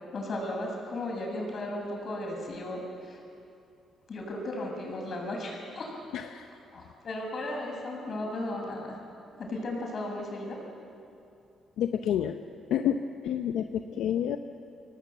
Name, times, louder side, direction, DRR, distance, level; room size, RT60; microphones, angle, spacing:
voice 1, 0.1-3.2 4.1-5.9 6.7-9.0 9.4-10.6, left 1 dB, 50° left, 0 dB, 6.8 m, -35 dB
voice 2, 11.8-12.4 12.7-13.6 14.0-14.4, left 9 dB, 80° left, 7 dB, 0.8 m, -28 dB
25.0 x 18.0 x 8.0 m, 2.6 s
cardioid pair, 90°, 0 cm